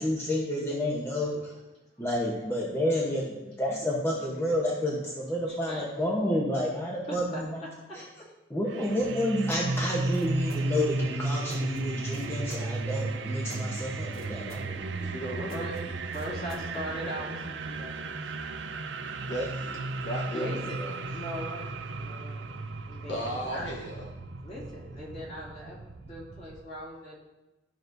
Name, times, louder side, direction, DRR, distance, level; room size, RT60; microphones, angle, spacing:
voice 1, 0.0-1.5 2.0-7.6 7.9-8.0 8.5-14.7, left 1 dB, 15° left, -4 dB, 0.9 m, -30 dB
voice 2, 5.4-5.9 6.2-6.4 7.1-7.4 7.9-8.3 15.5-15.7 16.1-18.3 20.3-20.8 21.1-22.4 22.9-23.7 24.4-27.1, equal, 35° left, -7 dB, 2.6 m, -40 dB
sound 1, 8.7-26.6, right 3 dB, 75° right, 0.6 m, -35 dB
sound 2, 9.0-16.9, equal, 50° left, 1.4 m, -48 dB
voice 3, 15.0-15.7 19.2-21.0 23.1-24.1, equal, 65° left, -3 dB, 1.3 m, -35 dB
13.0 x 6.1 x 2.7 m, 1.1 s
head